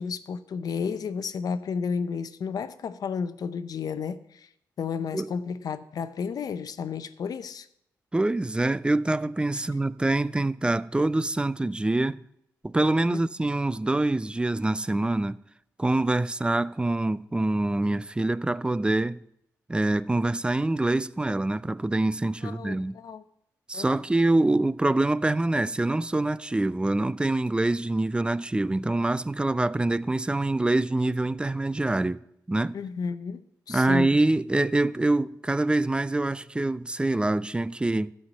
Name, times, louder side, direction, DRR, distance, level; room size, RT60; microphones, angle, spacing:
voice 1, 0.0-4.5 4.8-7.7 9.5-9.6 13.1-13.2 22.4-23.2 23.7-23.9 32.7-34.2, left 6 dB, 65° left, 0.7 m, -32 dB
voice 2, 8.1-12.2 12.6-15.4 15.8-19.2 19.7-23.0 23.7-32.2 32.5-32.8 33.7-38.1, right 2 dB, 15° right, 0.4 m, -25 dB
12.5 x 5.7 x 8.2 m
cardioid pair, 70°, 7 cm